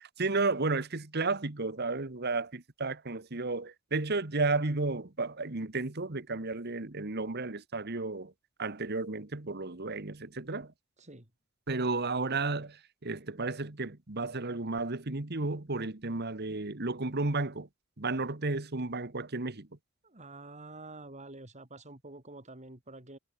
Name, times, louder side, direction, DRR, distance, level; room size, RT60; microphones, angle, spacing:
voice 1, 0.0-8.3 8.6-10.7 11.7-17.7 18.0-19.7, right 3 dB, 55° right, 1.6 m, -33 dB
voice 2, 11.0-11.3 20.0-23.2, right 2 dB, 35° right, 4.5 m, -48 dB
head